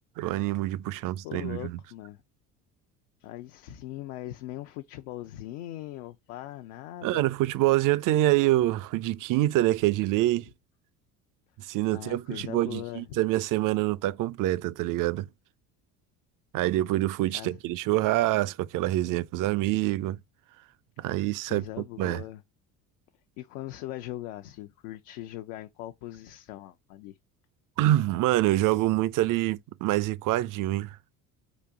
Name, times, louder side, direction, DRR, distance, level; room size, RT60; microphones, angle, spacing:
voice 1, 0.2-1.7 7.0-10.5 11.6-15.3 16.5-20.2 21.0-21.6 22.0-22.2 27.8-31.0, right 16 dB, 45° right, 0.5 m, -26 dB
voice 2, 0.9-2.2 3.2-7.3 11.9-13.2 17.3-17.6 21.5-22.4 23.4-27.2, left 14 dB, 70° left, 0.7 m, -40 dB
4.1 x 2.6 x 4.7 m
hypercardioid pair, 60°, 45 cm